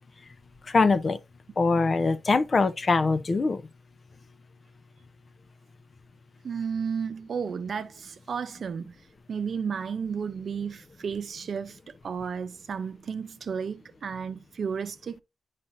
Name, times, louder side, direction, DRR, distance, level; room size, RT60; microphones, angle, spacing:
voice 1, 0.7-1.2 1.6-3.6, left 3 dB, 50° left, 0.6 m, -23 dB
voice 2, 6.4-8.9 9.3-11.8 12.0-15.1, right 6 dB, 70° right, 0.6 m, -33 dB
8.6 x 5.0 x 2.6 m
cardioid pair, 55°, 0 cm